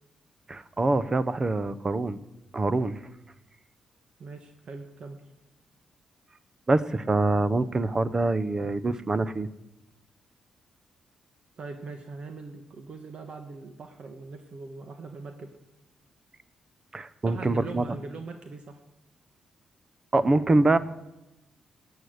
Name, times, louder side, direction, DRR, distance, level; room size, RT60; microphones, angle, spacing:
voice 1, 0.5-2.2 2.5-3.0 6.7-9.5 16.9-17.8 20.1-20.8, right 2 dB, 30° right, 15 dB, 0.8 m, -25 dB
voice 2, 4.2-5.2 11.6-15.6 17.2-18.8, right 4 dB, 50° right, 6 dB, 1.3 m, -41 dB
11.5 x 8.3 x 9.5 m, 0.92 s
cardioid pair, 85°, 2 cm